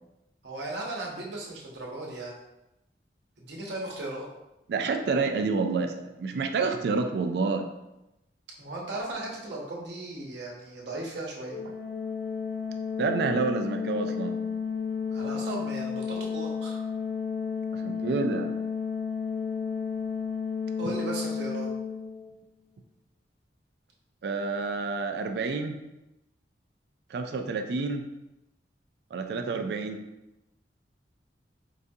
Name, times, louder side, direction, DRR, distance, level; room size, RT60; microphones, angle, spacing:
voice 1, 0.4-2.4 3.4-4.3 8.6-11.6 15.1-16.8 20.8-21.7 27.3-27.6 29.3-29.7, right 2 dB, 80° right, -2 dB, 0.9 m, -37 dB
voice 2, 4.7-7.7 13.0-14.4 17.7-18.5 20.8-20.9 24.2-25.8 27.1-28.0 29.1-30.0, right 4 dB, 60° right, 6 dB, 0.3 m, -29 dB
Organ, 11.5-22.4, left 6 dB, 55° left, 0.6 m, -32 dB
4.7 x 2.3 x 2.6 m, 0.93 s
head